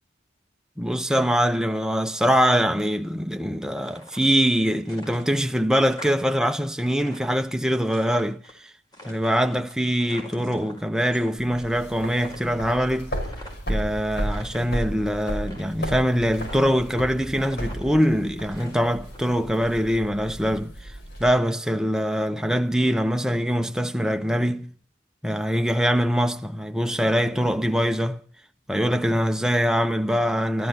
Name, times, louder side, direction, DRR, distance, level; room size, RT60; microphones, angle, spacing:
voice 1, 0.8-8.4 9.0-13.2 13.7-20.9 21.2-24.7 25.2-28.2 28.7-30.7, equal, 5° right, 0.9 m, -23 dB
sound 1, 3.7-4.5 4.8-6.4 6.7-8.5 8.9-11.3 11.6-11.9 12.1-13.8 14.2-14.9 15.4-16.0 16.3-17.1 17.4-19.2, equal, 20° left, 4.8 m, -45 dB
sound 2, 11.4-21.3, equal, 55° left, 5.6 m, -34 dB
14.5 x 14.5 x 7.0 m
head